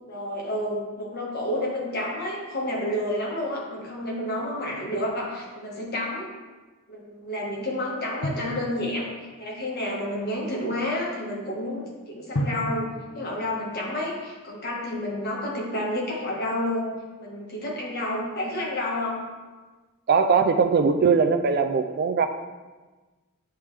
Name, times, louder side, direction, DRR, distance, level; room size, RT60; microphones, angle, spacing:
voice 1, 0.1-6.3 6.9-9.1 9.4-12.9 13.1-19.2, left 1 dB, 50° left, -4 dB, 1.5 m, -30 dB
Drum, 8.2-9.7 12.3-14.5, equal, 65° left, 0.8 m, -34 dB
voice 2, 20.1-22.3, right 5 dB, 45° right, 7 dB, 0.4 m, -20 dB
8.8 x 3.4 x 3.3 m, 1.3 s
head